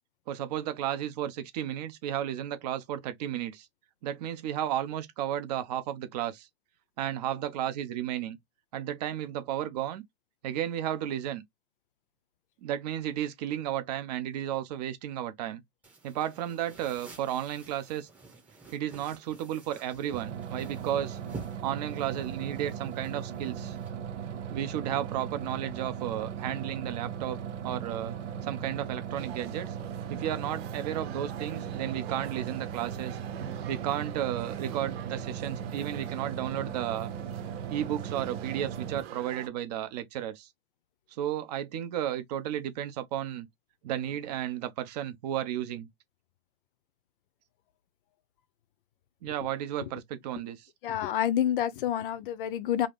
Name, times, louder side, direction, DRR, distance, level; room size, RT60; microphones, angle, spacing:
voice 1, 0.3-3.7 4.0-6.5 7.0-8.4 8.7-10.0 10.4-11.4 12.6-15.6 16.0-18.1 18.7-21.2 21.6-23.8 24.5-27.4 27.6-28.1 28.4-29.8 30.1-33.2 33.7-37.1 37.7-40.5 41.2-43.5 43.8-45.9 49.2-50.7, right 11 dB, 35° right, 0.5 m, -33 dB
sound 1, 15.8-23.9, right 2 dB, 5° right, 0.9 m, -50 dB
sound 2, 20.1-39.0, right 8 dB, 85° right, 0.9 m, -38 dB
sound 3, 29.2-39.5, right 10 dB, 60° right, 0.8 m, -46 dB
voice 2, 50.8-52.9, left 10 dB, 50° left, 0.5 m, -28 dB
2.8 x 2.4 x 3.3 m
supercardioid pair, 155°, 35 cm